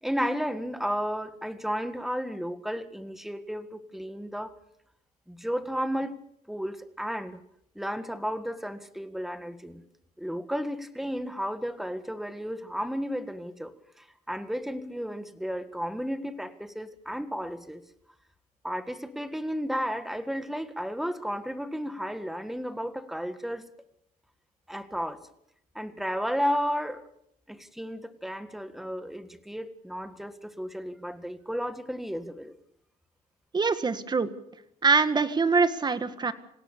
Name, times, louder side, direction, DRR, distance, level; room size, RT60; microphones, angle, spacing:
voice 1, 0.0-4.6 5.3-6.2 6.5-7.4 7.8-9.8 10.2-17.8 18.6-23.7 24.7-25.3 25.8-27.0 27.5-32.6, equal, ahead, 11 dB, 1.8 m, -33 dB
voice 2, 33.5-34.3 34.8-36.3, right 4 dB, 25° right, 11 dB, 1.8 m, -24 dB
26.5 x 17.0 x 6.9 m, 0.74 s
cardioid pair, 110°, 17 cm